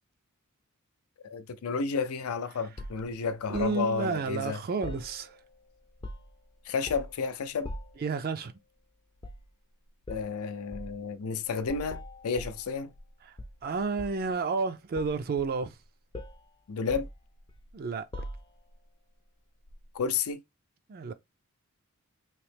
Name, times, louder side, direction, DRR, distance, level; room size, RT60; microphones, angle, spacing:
voice 1, 1.2-4.6 6.7-7.7 10.1-12.9 16.7-17.1 19.9-20.4, left 5 dB, 80° left, 0.5 m, -31 dB
sound 1, 2.8-3.8 4.8-5.6 5.8-6.4 6.9-7.2 7.6-8.1 9.2-9.5 10.0-10.3 10.7-11.0 11.6-13.1 13.4-14.3 15.0-15.8 16.1-16.4 16.9-17.7 18.1-18.7 19.7-19.8, left 1 dB, 20° left, 0.4 m, -42 dB
voice 2, 3.5-5.4 8.0-8.5 13.3-13.4 13.6-15.8 17.7-18.1 20.9-21.1, right 4 dB, 45° right, 0.4 m, -31 dB
3.0 x 2.8 x 3.3 m
head